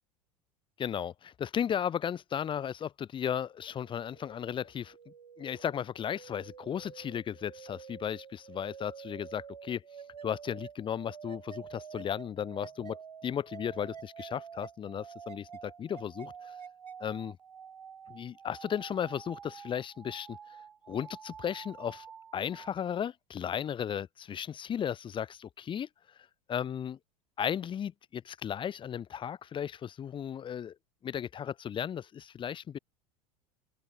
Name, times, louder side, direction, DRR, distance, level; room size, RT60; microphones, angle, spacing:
voice 1, 0.8-9.8 10.2-16.5 17.0-17.4 18.1-20.4 20.9-22.1 22.3-25.9 26.5-27.0 27.4-30.7 31.0-32.8, left 9 dB, 25° left, 0.7 m, -35 dB
sound 1, 3.5-22.7, right 7 dB, 85° right, 0.6 m, -49 dB
open air
figure-of-eight pair, 80°, 20 cm